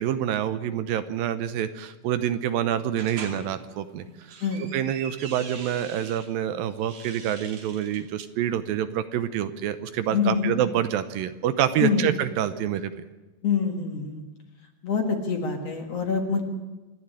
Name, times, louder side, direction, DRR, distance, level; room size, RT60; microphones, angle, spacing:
voice 1, 0.0-4.0 4.7-12.9, right 10 dB, 75° right, 12 dB, 2.4 m, -27 dB
sound 1, 3.0-3.4 4.1-6.3 6.7-8.0, right 5 dB, 55° right, 3.8 m, -42 dB
voice 2, 10.1-10.5 11.8-12.1 13.4-14.2 14.8-16.4, left 6 dB, 50° left, 4 dB, 2.4 m, -25 dB
27.0 x 11.0 x 9.9 m, 1.2 s
omnidirectional pair, 4.4 m